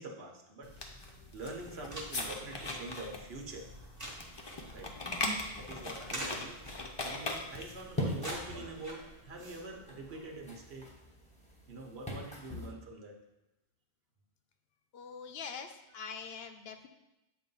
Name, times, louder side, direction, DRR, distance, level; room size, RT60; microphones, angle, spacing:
voice 1, 0.0-3.7 4.7-4.9 5.6-6.6 7.0-10.9 11.7-13.2, right 2 dB, 85° right, 1 dB, 1.1 m, -45 dB
sound 1, 0.6-7.8, left 2 dB, 30° left, 0.6 m, -40 dB
sound 2, 1.9-10.5, right 1 dB, 20° right, 1.0 m, -48 dB
sound 3, 7.6-12.7, equal, 5° left, 0.9 m, -41 dB
voice 2, 14.9-16.9, left 6 dB, 75° left, 7 dB, 0.8 m, -44 dB
7.7 x 2.6 x 5.3 m, 0.95 s
omnidirectional pair, 1.0 m